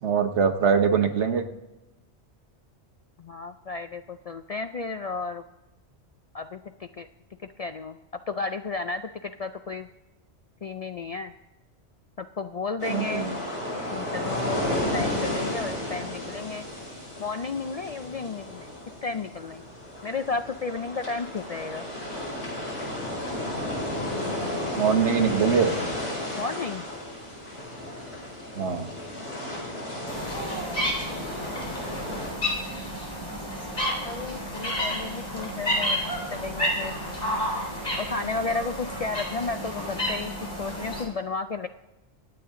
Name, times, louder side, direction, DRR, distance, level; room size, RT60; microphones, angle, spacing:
voice 1, 0.0-1.4 12.9-13.3 24.7-25.7 28.5-28.9, right 6 dB, 90° right, 7 dB, 1.4 m, -23 dB
voice 2, 3.2-5.4 6.3-7.1 7.4-8.0 8.3-9.9 10.6-11.3 12.2-13.3 13.9-16.6 17.2-18.7 19.0-19.6 20.0-21.9 26.3-26.8 34.0-37.0 38.0-41.7, left 4 dB, 60° left, 8 dB, 0.4 m, -33 dB
sound 1, 12.8-32.3, left 1 dB, 75° left, 6.1 m, -33 dB
sound 2, 30.1-41.0, equal, 45° left, 3.8 m, -31 dB
24.5 x 8.7 x 3.7 m, 1.0 s
omnidirectional pair, 1.1 m